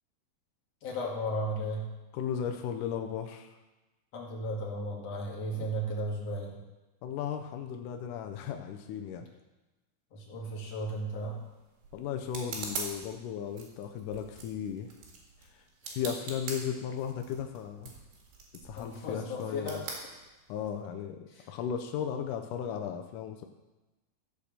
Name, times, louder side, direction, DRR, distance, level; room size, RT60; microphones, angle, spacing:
voice 1, 0.8-1.9 4.1-6.6 10.1-11.4 18.7-19.8 21.3-21.4, equal, 45° left, -3 dB, 2.7 m, -35 dB
voice 2, 2.1-3.5 5.5-5.7 7.0-9.3 11.9-14.9 15.5-17.9 18.6-19.8 20.5-23.5, left 8 dB, 85° left, 5 dB, 1.8 m, -36 dB
sound 1, 11.0-20.8, right 4 dB, 90° right, 4.1 m, -44 dB
14.5 x 5.1 x 6.7 m, 1.1 s
omnidirectional pair, 4.6 m